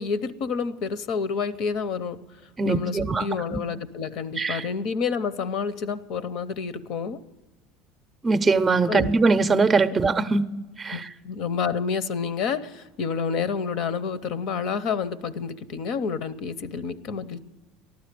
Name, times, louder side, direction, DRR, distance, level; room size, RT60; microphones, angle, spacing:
voice 1, 0.0-2.2 2.6-7.2 8.9-9.1 9.9-10.0 10.9-17.4, left 5 dB, 60° left, 0.7 m, -29 dB
voice 2, 2.6-3.2 3.5-3.6 4.4-4.7 8.2-10.4 10.8-11.1, right 4 dB, 20° right, 0.5 m, -21 dB
14.5 x 11.5 x 6.7 m
supercardioid pair, 95°, 0 cm